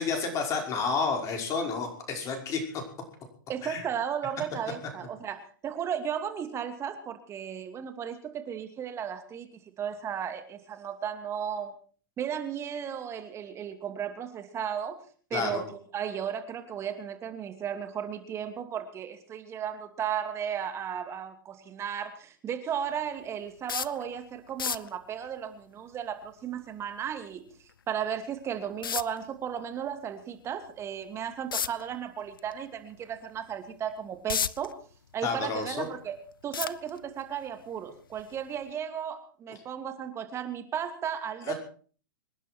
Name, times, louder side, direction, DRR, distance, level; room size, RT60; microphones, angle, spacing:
voice 1, 0.0-2.8 3.6-3.8 15.3-15.6 35.2-35.8 41.5-41.6, left 5 dB, 30° left, 3 dB, 5.5 m, -30 dB
voice 2, 3.5-9.5 9.8-11.7 12.2-15.0 15.3-27.4 27.9-34.7 35.1-36.2 36.4-41.5, right 8 dB, 25° right, 8 dB, 2.7 m, -35 dB
sound 1, 23.7-24.0 24.5-24.9 27.7-27.8 28.8-29.2 31.5-31.8 32.4-32.5 33.0-33.1 33.9-34.7 35.2-35.9 36.5-37.2 38.1-38.3 38.7-38.8, left 7 dB, 90° left, 0.8 m, -31 dB
26.0 x 11.0 x 4.6 m, 0.43 s
hypercardioid pair, 125°, 11 cm